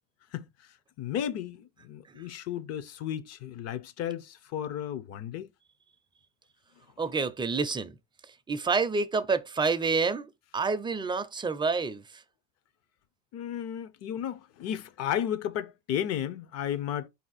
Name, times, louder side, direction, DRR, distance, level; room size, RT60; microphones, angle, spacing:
voice 1, 1.0-5.5 13.3-17.1, left 10 dB, 45° left, 0.7 m, -33 dB
voice 2, 7.0-8.0 8.5-12.2, right 4 dB, 15° right, 0.5 m, -28 dB
4.2 x 2.8 x 4.1 m
supercardioid pair, 100°, 36 cm